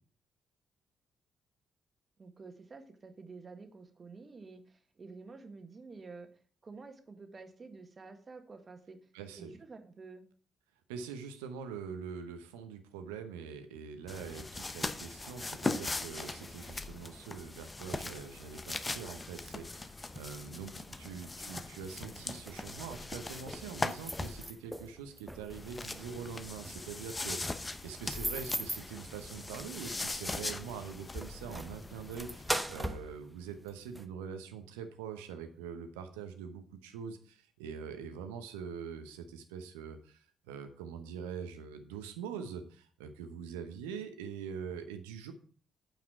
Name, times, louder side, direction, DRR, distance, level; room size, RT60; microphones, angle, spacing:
voice 1, 2.2-6.3 6.6-9.0 9.4-10.2, right 4 dB, 35° right, 7 dB, 1.7 m, -50 dB
voice 2, 9.1-9.5 10.9-45.3, right 7 dB, 75° right, 8 dB, 0.9 m, -44 dB
sound 1, 14.1-24.5 25.5-32.6, left 2 dB, 25° left, 1.0 m, -40 dB
sound 2, 22.5-34.1, right 1 dB, 5° right, 1.1 m, -42 dB
9.0 x 7.1 x 4.7 m, 0.43 s
figure-of-eight pair, 40°, 0 cm